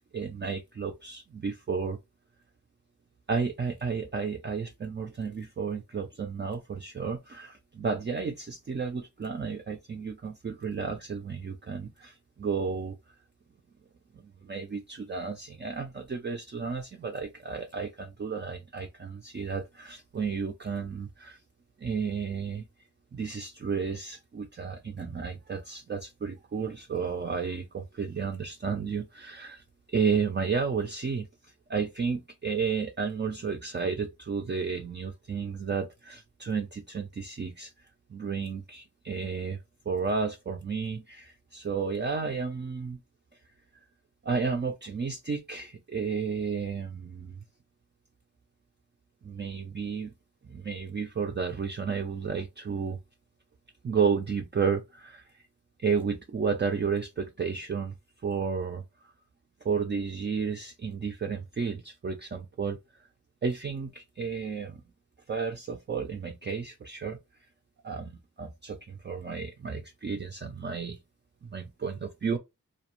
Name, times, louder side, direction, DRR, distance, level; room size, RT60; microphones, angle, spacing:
voice 1, 0.1-2.0 3.3-12.9 14.1-21.4 21.8-22.6 23.1-39.6 39.9-43.0 44.2-47.4 49.2-50.1 50.4-53.0 53.8-55.4 55.8-58.0 58.2-58.8 59.6-62.8 63.4-64.8 65.3-67.2 67.8-71.0 71.4-72.4, right 5 dB, 35° right, 0.4 m, -32 dB
2.4 x 2.0 x 2.9 m
wide cardioid pair, 55°, 34 cm